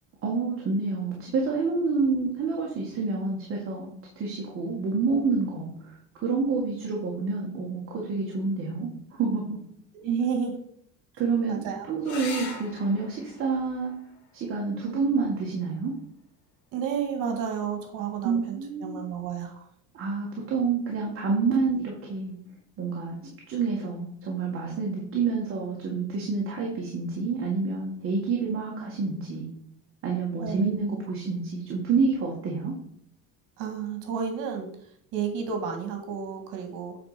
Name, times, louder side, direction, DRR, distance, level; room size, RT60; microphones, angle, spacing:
voice 1, 0.2-3.9 4.2-6.0 6.2-9.6 11.2-11.6 11.9-13.9 14.3-15.9 18.2-19.0 19.9-22.4 22.8-23.2 23.5-29.5 30.0-32.7, right 4 dB, 40° right, -2 dB, 2.0 m, -28 dB
voice 2, 9.9-10.6 11.5-11.9 16.7-19.7 30.4-30.9 33.6-34.7 35.1-37.0, right 7 dB, 70° right, 4 dB, 2.0 m, -31 dB
sound 1, 12.0-17.1 19.0-19.6 23.0-23.2 23.5-23.6, left 4 dB, 60° left, 1.6 m, -44 dB
9.2 x 4.2 x 5.1 m, 0.67 s
cardioid pair, 135°, 32 cm